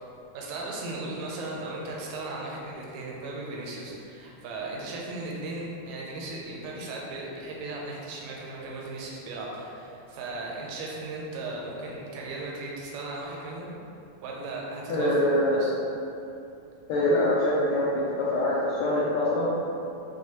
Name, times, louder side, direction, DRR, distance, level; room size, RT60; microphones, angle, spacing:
voice 1, 0.3-13.7 14.2-15.8, right 2 dB, 80° right, -3 dB, 1.7 m, -36 dB
voice 2, 14.9-15.6 16.9-19.5, left 1 dB, 80° left, -7 dB, 1.7 m, -24 dB
6.4 x 2.2 x 2.8 m, 2.7 s
omnidirectional pair, 3.6 m